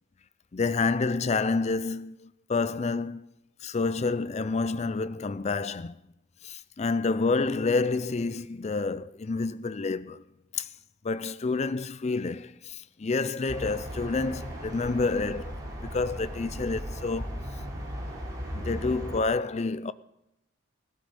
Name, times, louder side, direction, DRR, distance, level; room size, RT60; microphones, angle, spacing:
voice 1, 0.5-3.2 3.6-6.0 6.4-10.2 10.5-10.7 11.0-15.5 15.8-17.4 18.5-19.9, left 4 dB, 35° left, 0.4 m, -28 dB
sound 1, 13.5-19.2, equal, 20° right, 3.4 m, -37 dB
16.5 x 13.5 x 5.3 m
head